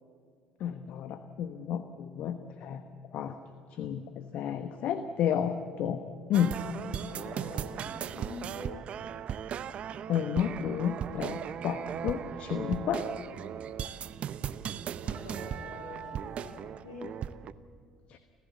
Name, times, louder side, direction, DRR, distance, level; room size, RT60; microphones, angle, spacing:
voice 1, 0.6-1.8 2.2-2.8 3.1-3.4 3.8-6.0 6.3-6.6 10.1-13.0, left 9 dB, 60° left, 9 dB, 1.1 m, -31 dB
sound 1, 6.3-17.5, right 9 dB, 50° right, 0.7 m, -37 dB
voice 2, 6.6-8.8 14.7-17.2, left 2 dB, 80° left, -3 dB, 5.3 m, -46 dB
29.5 x 15.5 x 8.3 m, 2.1 s
hypercardioid pair, 60°, 3 cm